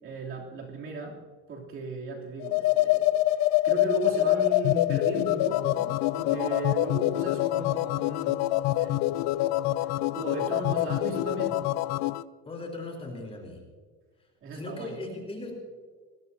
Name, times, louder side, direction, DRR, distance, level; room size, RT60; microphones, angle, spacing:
voice 1, 0.0-1.2 1.5-9.0 9.8-11.6 14.4-15.2, right 3 dB, 45° right, -2 dB, 3.2 m, -36 dB
sound 1, 2.4-12.2, left 16 dB, 70° left, 0.5 m, -25 dB
voice 2, 12.5-13.6 14.5-15.5, left 2 dB, 20° left, 2 dB, 3.8 m, -38 dB
20.5 x 17.0 x 2.8 m, 1.5 s
cardioid pair, 135°, 29 cm